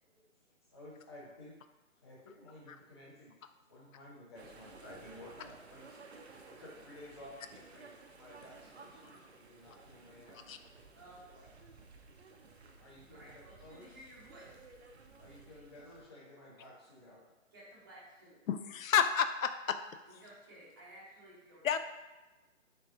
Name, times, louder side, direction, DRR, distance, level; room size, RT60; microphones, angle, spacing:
voice 1, 0.7-1.5 2.0-3.4 3.7-6.0 6.5-10.6 12.8-13.3 13.6-13.8 15.2-17.2, left 1 dB, 20° left, -7 dB, 0.6 m, -54 dB
sound 1, 4.3-16.0, right 3 dB, 55° right, 0.6 m, -56 dB
voice 2, 10.9-11.5 13.1-14.6 17.5-18.4 20.1-21.8, right 1 dB, 15° right, -8 dB, 0.7 m, -55 dB
voice 3, 18.5-19.8 21.6-21.8, left 8 dB, 75° left, 9 dB, 0.5 m, -30 dB
3.7 x 3.3 x 3.6 m, 1.1 s
hypercardioid pair, 165°, 40 cm